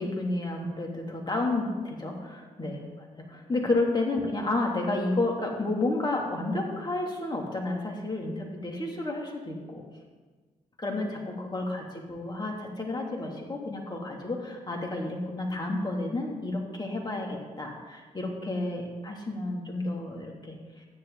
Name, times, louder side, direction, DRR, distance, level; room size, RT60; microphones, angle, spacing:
voice 1, 0.0-9.8 10.8-20.8, left 2 dB, 25° left, 0 dB, 3.0 m, -31 dB
13.5 x 9.6 x 4.1 m, 1.4 s
hypercardioid pair, 45°, 17 cm